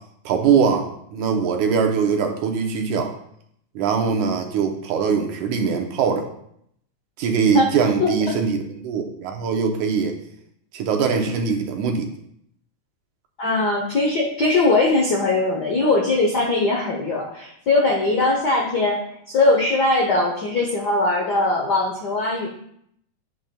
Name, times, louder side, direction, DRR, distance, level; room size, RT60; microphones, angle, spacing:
voice 1, 0.3-3.1 3.8-6.3 7.2-10.1 10.7-12.1, right 6 dB, 85° right, 3 dB, 2.4 m, -22 dB
voice 2, 8.0-8.3 13.4-19.0 19.3-22.5, left 2 dB, 85° left, -1 dB, 0.9 m, -20 dB
8.8 x 7.9 x 2.3 m, 0.71 s
omnidirectional pair, 3.4 m